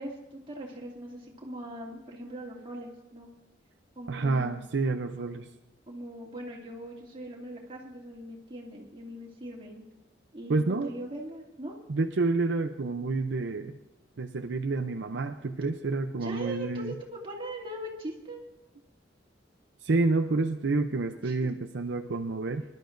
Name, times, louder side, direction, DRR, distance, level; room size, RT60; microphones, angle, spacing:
voice 1, 0.0-3.3 4.0-4.6 5.9-9.8 10.3-11.8 16.2-18.4 21.2-21.5, right 1 dB, 30° right, -2 dB, 2.5 m, -41 dB
voice 2, 4.1-5.5 10.5-10.9 11.9-13.8 14.2-16.9 19.8-22.6, right 3 dB, 70° right, 6 dB, 0.6 m, -29 dB
25.0 x 12.5 x 2.6 m, 0.98 s
head